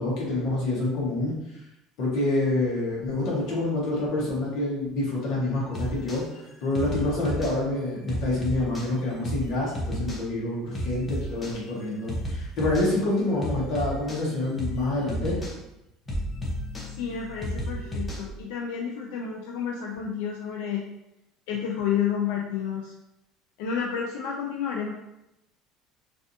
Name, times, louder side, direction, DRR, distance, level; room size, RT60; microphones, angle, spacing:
voice 1, 0.0-1.3 2.0-6.2 6.6-15.3, left 2 dB, 45° left, -5 dB, 1.2 m, -27 dB
sound 1, 5.7-6.2 6.7-7.5 8.1-8.9 9.2-9.5 9.7-10.2 10.7-11.5 12.1-12.9 13.4-14.2 14.6-14.8 15.1-15.5 16.1-18.3, equal, 15° left, 0.6 m, -32 dB
voice 2, 17.0-20.8 21.5-22.9 23.6-24.9, left 7 dB, 80° left, 0 dB, 0.3 m, -30 dB
3.3 x 2.5 x 2.7 m, 0.88 s
cardioid pair, 175°, 0 cm